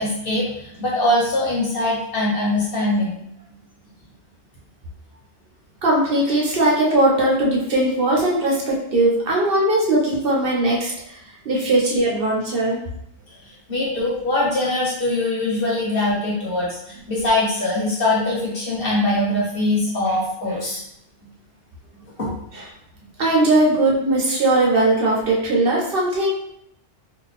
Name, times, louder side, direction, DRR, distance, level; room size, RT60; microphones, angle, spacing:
voice 1, 0.0-3.2 13.7-20.8 22.2-22.3, left 1 dB, 55° left, -6 dB, 1.3 m, -22 dB
voice 2, 5.8-11.2 11.4-12.8 22.5-22.6 23.2-26.3, right 1 dB, 55° right, -3 dB, 0.9 m, -19 dB
2.7 x 2.6 x 4.0 m, 0.77 s
omnidirectional pair, 1.2 m